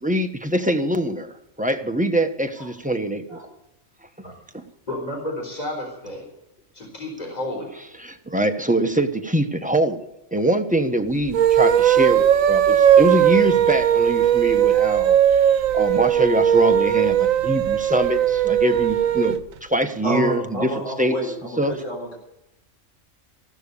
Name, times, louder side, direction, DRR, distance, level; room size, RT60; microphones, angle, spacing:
voice 1, 0.0-3.4 4.2-4.6 8.0-10.0 10.3-20.7 21.0-21.2 21.6-21.8, right 1 dB, 5° right, 5 dB, 1.0 m, -24 dB
voice 2, 4.9-6.2 6.7-7.7, left 1 dB, 30° left, 0 dB, 4.4 m, -31 dB
sound 1, 11.2-19.4, right 10 dB, 85° right, 1.1 m, -18 dB
voice 3, 20.0-22.2, equal, 70° left, 1 dB, 4.6 m, -29 dB
15.5 x 12.5 x 6.8 m, 0.89 s
omnidirectional pair, 1.3 m